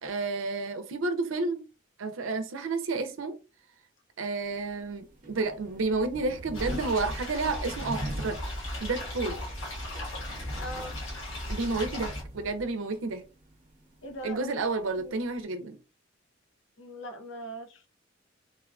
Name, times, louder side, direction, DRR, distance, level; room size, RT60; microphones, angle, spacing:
voice 1, 0.0-1.6 2.0-3.4 4.2-8.4 8.8-9.4 11.5-13.2 14.2-15.8, right 3 dB, 80° right, 0.6 m, -31 dB
sound 1, 4.4-15.4, right 1 dB, 40° right, 0.7 m, -44 dB
sound 2, 6.5-12.2, left 1 dB, 80° left, 1.1 m, -36 dB
voice 2, 10.6-11.0 14.0-14.6 15.0-15.1 16.8-17.9, equal, 65° left, 0.7 m, -40 dB
3.5 x 2.3 x 2.4 m
head